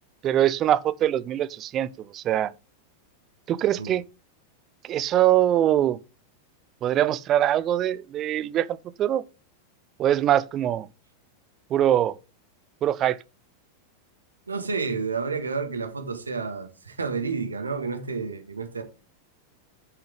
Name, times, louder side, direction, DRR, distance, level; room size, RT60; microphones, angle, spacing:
voice 1, 0.2-1.9 2.1-2.5 3.5-4.0 4.9-6.0 6.8-9.2 10.0-10.9 11.7-12.2 12.8-13.2, right 11 dB, 30° right, 0.7 m, -23 dB
voice 2, 14.5-18.8, right 4 dB, 75° right, 1.8 m, -30 dB
10.0 x 5.8 x 4.0 m
figure-of-eight pair, 90°, 0 cm